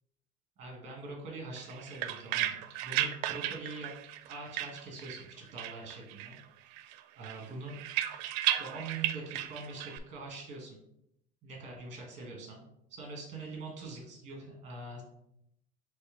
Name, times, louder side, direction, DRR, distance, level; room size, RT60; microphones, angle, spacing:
voice 1, 0.6-3.9 4.2-6.4 6.7-7.8 8.6-10.8 11.4-12.6 12.9-15.0, right 3 dB, 35° right, -1 dB, 1.5 m, -44 dB
sound 1, 1.6-5.3 5.6-6.4 6.7-10.0, right 13 dB, 90° right, 0.4 m, -35 dB
4.2 x 3.2 x 3.8 m, 0.79 s
cardioid pair, 155°, 21 cm